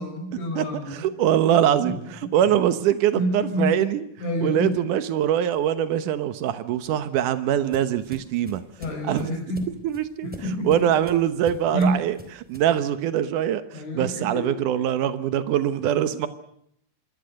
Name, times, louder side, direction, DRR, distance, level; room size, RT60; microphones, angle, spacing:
voice 1, 0.0-1.1 1.8-2.0 2.3-2.4 3.1-3.8 4.2-4.9 8.8-9.7 10.2-10.8 11.7-12.0 13.7-14.5, equal, 85° left, 4 dB, 8.4 m, -28 dB
voice 2, 0.9-4.0 4.4-8.6 9.1-9.3 9.8-10.3 10.6-12.2 12.5-16.3, right 10 dB, 80° right, 12 dB, 1.8 m, -23 dB
sound 1, 6.7-12.8, equal, 5° right, 2.3 m, -45 dB
26.5 x 22.5 x 6.5 m, 0.71 s
omnidirectional pair, 5.2 m